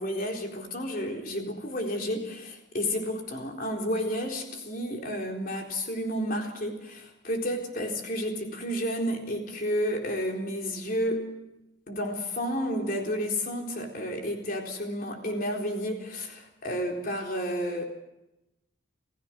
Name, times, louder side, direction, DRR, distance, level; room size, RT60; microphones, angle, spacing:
voice 1, 0.0-11.3 11.9-17.8, equal, 45° left, 2 dB, 4.1 m, -31 dB
28.5 x 15.5 x 6.2 m, 0.92 s
head